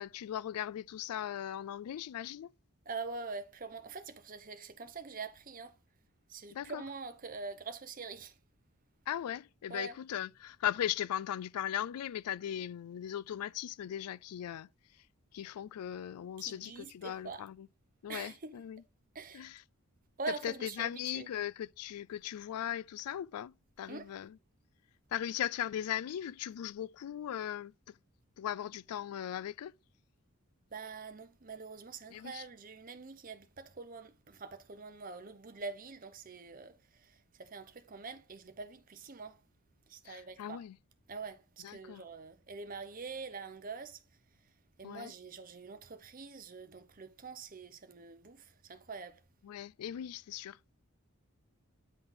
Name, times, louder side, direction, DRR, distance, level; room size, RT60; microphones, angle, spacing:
voice 1, 0.0-2.5 6.5-6.8 9.1-14.7 15.3-17.7 18.0-18.8 19.3-19.6 20.4-24.4 25.1-27.7 28.4-29.7 32.1-32.5 40.1-40.8 41.6-42.0 44.8-45.1 49.4-50.6, left 10 dB, 85° left, 0.3 m, -38 dB
voice 2, 2.9-5.7 6.3-8.3 9.7-9.9 16.4-17.5 18.1-18.5 19.1-19.5 20.2-21.3 23.9-24.1 30.7-39.4 39.9-40.6 41.1-44.0 44.8-49.2, right 4 dB, 40° right, 0.8 m, -44 dB
9.6 x 3.9 x 3.5 m
head